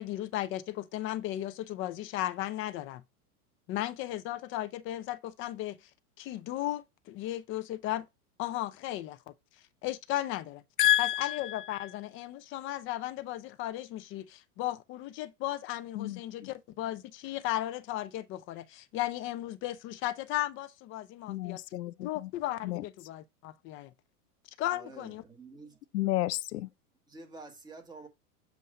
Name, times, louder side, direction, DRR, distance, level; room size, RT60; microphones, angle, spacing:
voice 1, 0.0-3.0 3.7-5.8 6.2-8.1 8.4-9.3 9.8-10.6 11.0-21.6 22.0-23.9 24.6-25.2, left 14 dB, 25° left, 0.5 m, -35 dB
voice 2, 10.8-11.6 16.0-16.5 21.3-22.3 22.6-22.8 25.9-26.7, left 14 dB, 85° left, 0.6 m, -30 dB
voice 3, 24.7-25.8 27.1-28.1, right 3 dB, 10° right, 1.4 m, -49 dB
7.6 x 2.6 x 5.4 m
hypercardioid pair, 120°, 47 cm